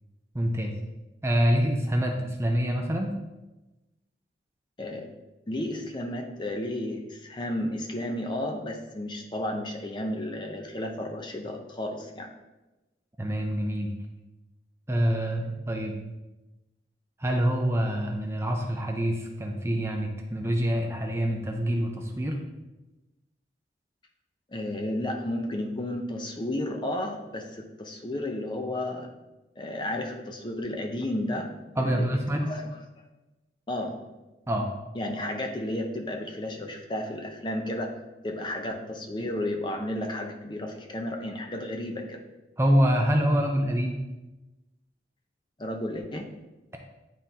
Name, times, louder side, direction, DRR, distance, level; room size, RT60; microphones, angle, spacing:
voice 1, 0.3-0.7 1.2-3.1 13.2-13.9 14.9-16.0 17.2-22.4 31.8-32.5 34.5-34.7 42.6-44.0, equal, 15° right, 2 dB, 0.6 m, -26 dB
voice 2, 4.8-5.1 5.5-12.3 24.5-29.1 29.6-32.7 33.7-34.0 34.9-42.2 45.6-46.3, left 1 dB, 25° left, 3 dB, 0.6 m, -33 dB
10.5 x 3.7 x 2.8 m, 1.1 s
head